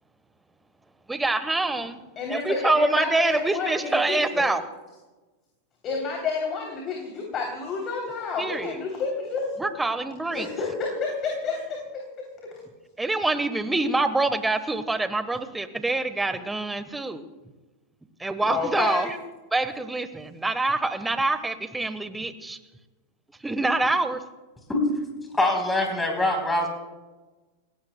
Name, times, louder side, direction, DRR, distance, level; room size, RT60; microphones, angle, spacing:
voice 1, 1.1-2.0 2.3-4.6 8.4-8.7 9.6-10.5 13.0-17.3 18.2-19.1 19.5-22.6 23.4-24.2, right 2 dB, 10° right, 12 dB, 1.1 m, -25 dB
voice 2, 2.2-4.5 5.8-9.5 10.3-12.0 12.4-12.5 18.4-19.1, left 4 dB, 30° left, 1 dB, 3.1 m, -30 dB
voice 3, 25.3-26.7, left 2 dB, 10° left, 2 dB, 3.8 m, -23 dB
29.5 x 16.5 x 2.2 m, 1.2 s
figure-of-eight pair, 90°, 0 cm